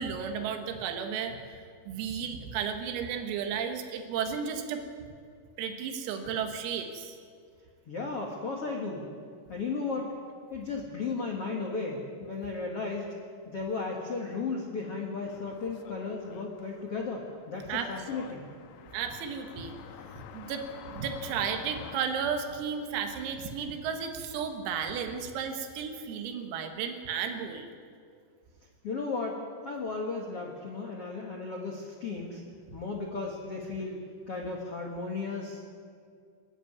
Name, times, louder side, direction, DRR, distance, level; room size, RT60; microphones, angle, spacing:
voice 1, 0.0-1.4 1.9-4.8 5.6-7.2 17.7-17.9 18.9-19.7 20.2-27.7, right 7 dB, 90° right, 6 dB, 4.2 m, -33 dB
voice 2, 7.9-9.1 9.5-10.1 10.5-13.0 13.4-18.4 28.8-32.4 32.7-34.0 34.3-35.7, left 4 dB, 65° left, 0 dB, 1.4 m, -35 dB
sound 1, 15.2-22.0, left 9 dB, 85° left, 3.8 m, -49 dB
29.5 x 11.0 x 9.5 m, 2.2 s
omnidirectional pair, 5.9 m